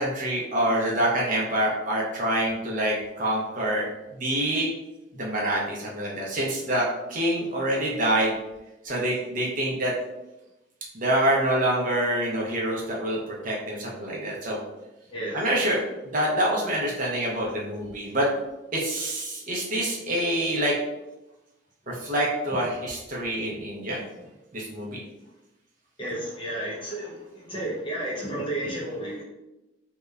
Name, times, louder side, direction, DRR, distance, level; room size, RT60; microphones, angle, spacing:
voice 1, 0.0-3.9 4.2-4.7 5.1-8.3 8.8-9.9 10.9-14.6 15.3-15.8 16.0-18.3 18.7-20.7 21.9-24.0 24.5-25.0, right 1 dB, 40° right, -4 dB, 0.5 m, -26 dB
voice 2, 15.1-15.5 26.0-29.2, right 1 dB, 25° left, -6 dB, 0.7 m, -32 dB
2.8 x 2.1 x 2.3 m, 0.97 s
head